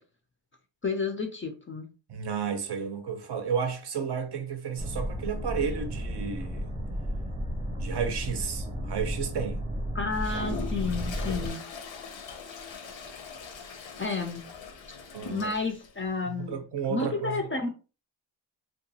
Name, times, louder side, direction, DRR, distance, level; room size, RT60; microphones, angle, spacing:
voice 1, 0.8-1.9 9.9-11.6 14.0-14.5 15.2-17.7, left 4 dB, 30° left, 0.3 m, -31 dB
voice 2, 2.1-6.7 7.8-9.6 15.1-15.5 16.3-17.5, right 7 dB, 60° right, 0.6 m, -32 dB
sound 1, 4.8-11.5, equal, 10° right, 0.6 m, -33 dB
Toilet flush, 10.1-15.9, left 5 dB, 80° left, 0.6 m, -41 dB
2.8 x 2.2 x 2.7 m
wide cardioid pair, 150°, 45 cm